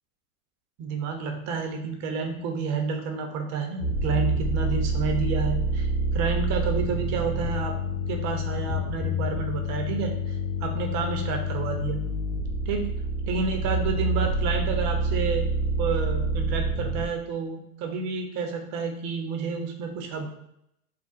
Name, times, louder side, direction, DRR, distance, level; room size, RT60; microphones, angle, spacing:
voice 1, 0.8-7.8 8.1-10.3 10.6-12.0 12.7-12.9 13.3-20.3, right 4 dB, 40° right, 3 dB, 0.9 m, -30 dB
sound 1, 3.8-17.1, right 1 dB, 60° left, 1.0 m, -27 dB
3.5 x 2.3 x 4.0 m, 0.78 s
hypercardioid pair, 110°, 44 cm